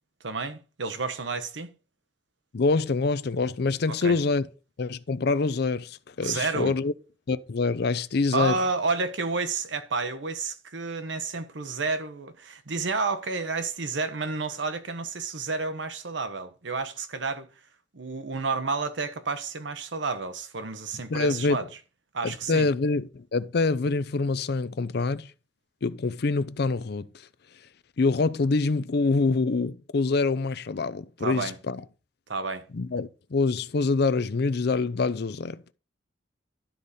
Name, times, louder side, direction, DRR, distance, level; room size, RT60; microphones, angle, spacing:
voice 1, 0.2-1.7 3.9-4.2 6.2-6.8 8.3-17.5 17.9-21.7 22.1-22.7 31.2-31.6 32.3-32.6, right 4 dB, 80° right, 1.0 m, -30 dB
voice 2, 2.5-4.5 4.8-6.9 7.3-8.6 21.1-21.6 22.2-25.3 25.8-27.1 28.0-31.8 32.7-35.6, left 3 dB, 60° left, 0.5 m, -25 dB
12.0 x 4.2 x 5.0 m
head